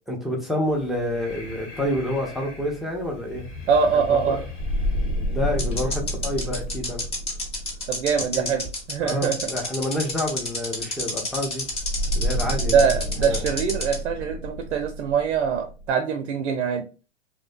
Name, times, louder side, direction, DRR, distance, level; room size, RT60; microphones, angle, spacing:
voice 1, 0.1-3.5 3.9-4.4 5.3-7.0 8.3-8.5 9.0-11.7 12.1-12.9 13.2-13.4, left 1 dB, ahead, -1 dB, 0.4 m, -28 dB
Breathing, 0.7-6.7, left 3 dB, 85° left, 1.1 m, -41 dB
sound 1, 1.1-2.7 2.9-3.0 4.8-4.9 5.6-14.0, left 2 dB, 15° left, 0.8 m, -30 dB
voice 2, 3.7-4.4 7.9-9.4 12.7-16.8, right 6 dB, 80° right, 7 dB, 0.5 m, -23 dB
sound 2, 4.6-9.0 11.7-15.9, equal, 70° left, 0.8 m, -29 dB
2.6 x 2.0 x 2.5 m, 0.33 s
hypercardioid pair, 100°, 36 cm